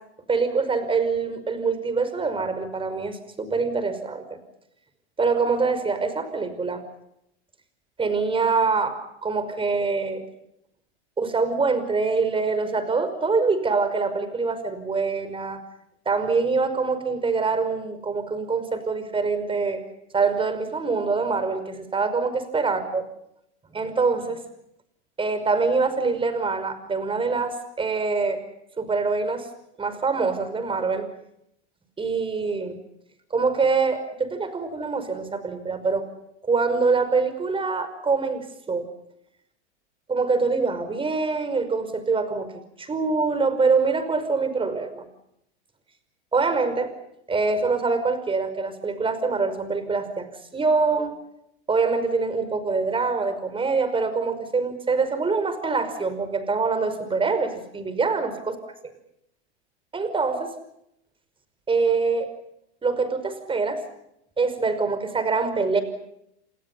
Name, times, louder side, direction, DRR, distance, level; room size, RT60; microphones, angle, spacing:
voice 1, 0.3-4.2 5.2-6.8 8.0-10.2 11.2-15.6 16.1-19.8 20.1-23.0 23.7-24.4 25.2-28.4 28.8-29.5 29.8-31.1 32.0-32.8 33.3-36.1 36.4-38.9 40.1-42.5 42.8-45.0 46.3-46.9 47.3-50.3 50.5-51.1 51.7-58.6 59.9-60.5 61.7-62.3 62.8-63.8 64.4-65.8, right 4 dB, 15° right, 11 dB, 5.5 m, -24 dB
30.0 x 27.0 x 5.6 m, 0.80 s
hypercardioid pair, 120°, 34 cm